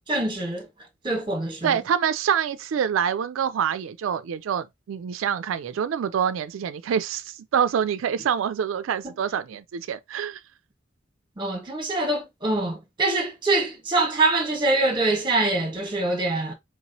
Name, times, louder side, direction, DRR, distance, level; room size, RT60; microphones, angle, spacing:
voice 1, 0.1-0.7 1.0-1.7 9.0-9.1 11.4-16.5, right 2 dB, 25° right, 1.4 m, -24 dB
voice 2, 1.6-10.4, right 8 dB, 85° right, 0.3 m, -26 dB
4.4 x 3.0 x 2.7 m
head